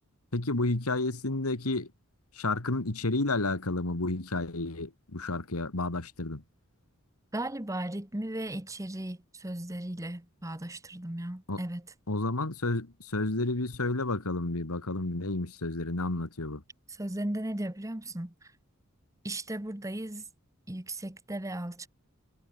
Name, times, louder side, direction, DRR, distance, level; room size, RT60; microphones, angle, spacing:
voice 1, 0.3-1.9 2.4-6.4 11.5-11.6 12.1-16.6, left 2 dB, 90° left, 2.1 m, -31 dB
voice 2, 7.3-11.9 16.9-18.3 19.2-20.2 20.7-21.9, right 1 dB, 15° right, 1.2 m, -36 dB
head